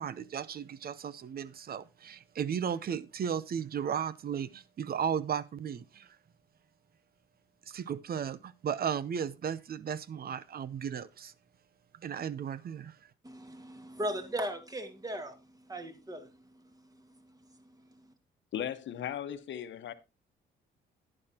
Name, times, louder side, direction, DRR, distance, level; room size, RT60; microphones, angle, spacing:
voice 1, 0.0-6.1 7.7-11.3 12.0-13.0, right 8 dB, 50° right, 0.7 m, -35 dB
voice 2, 13.2-18.1, right 1 dB, 20° right, 2.0 m, -39 dB
voice 3, 18.5-19.9, left 10 dB, 70° left, 1.1 m, -37 dB
11.0 x 9.8 x 2.9 m
cardioid pair, 90°, 20 cm